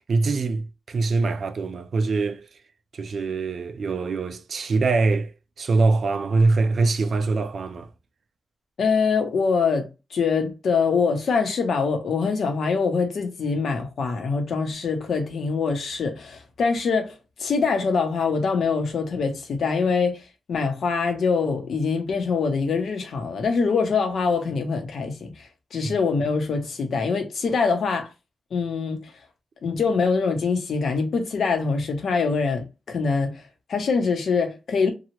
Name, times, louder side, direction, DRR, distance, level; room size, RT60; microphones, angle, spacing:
voice 1, 0.1-2.5 2.9-7.9, right 3 dB, 50° right, 0.4 m, -23 dB
voice 2, 8.8-9.9 10.1-20.2 20.5-28.1 28.5-29.1 29.6-33.4 33.7-34.9, left 5 dB, 60° left, 0.8 m, -24 dB
3.0 x 2.3 x 2.8 m
wide cardioid pair, 125°, 0 cm